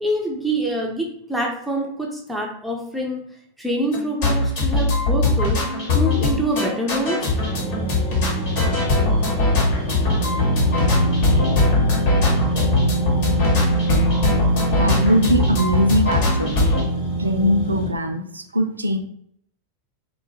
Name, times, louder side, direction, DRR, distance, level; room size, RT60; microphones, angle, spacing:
voice 1, 0.0-3.2 3.6-5.6 5.9-7.3, right 1 dB, 5° right, -2 dB, 0.5 m, -25 dB
sound 1, 3.9-16.8, left 2 dB, 50° left, 1.0 m, -21 dB
sound 2, 7.3-17.9, right 1 dB, 75° left, 1.1 m, -25 dB
voice 2, 14.8-16.7 17.2-19.0, equal, 80° right, 6 dB, 0.3 m, -21 dB
3.0 x 2.2 x 3.2 m, 0.69 s
figure-of-eight pair, 90°, 0 cm